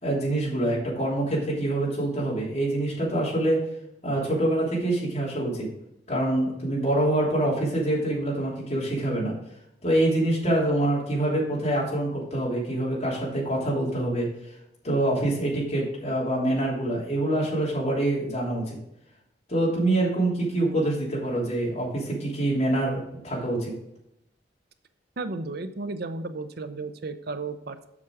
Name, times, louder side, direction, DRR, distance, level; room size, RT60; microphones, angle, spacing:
voice 1, 0.0-3.6 4.0-5.7 6.1-9.3 9.8-14.3 14.8-18.8 19.5-23.7, right 1 dB, 35° left, -5 dB, 3.1 m, -25 dB
voice 2, 25.2-27.9, right 3 dB, 55° right, 10 dB, 0.6 m, -34 dB
7.3 x 6.1 x 4.7 m, 0.82 s
head